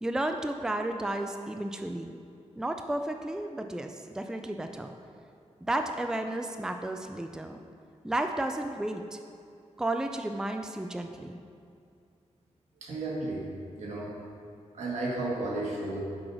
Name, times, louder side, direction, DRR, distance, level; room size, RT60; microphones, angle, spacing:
voice 1, 0.0-2.2 2.6-4.9 5.6-7.6 8.0-9.2 9.8-11.3, right 1 dB, 5° right, 5 dB, 0.4 m, -32 dB
voice 2, 12.8-14.1 14.7-16.0, right 2 dB, 80° right, -3 dB, 1.6 m, -33 dB
6.2 x 4.7 x 6.1 m, 2.4 s
wide cardioid pair, 85°, 12 cm